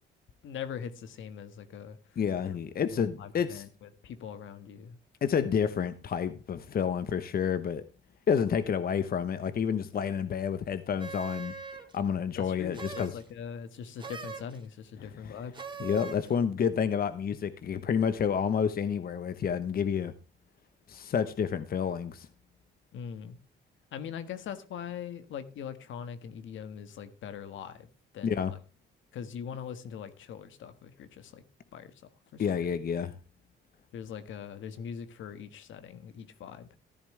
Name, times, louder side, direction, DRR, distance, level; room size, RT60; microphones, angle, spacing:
voice 1, 0.4-2.2 2.4-2.6 2.9-5.0 12.4-15.5 22.9-23.4 23.9-27.9 28.1-28.6 29.1-31.4 31.7-32.0 32.3-32.8 33.9-36.8, left 7 dB, 75° left, 1.6 m, -42 dB
voice 2, 2.2-3.6 5.2-7.9 8.3-11.5 11.9-13.1 15.2-15.4 15.8-20.1 20.9-22.3 28.2-28.5 32.4-33.1, left 7 dB, 50° left, 0.9 m, -29 dB
sound 1, 11.0-12.0 12.7-13.2 14.0-14.6 15.5-16.3, right 5 dB, 25° right, 2.6 m, -41 dB
14.0 x 10.5 x 3.2 m
cardioid pair, 90°, 20 cm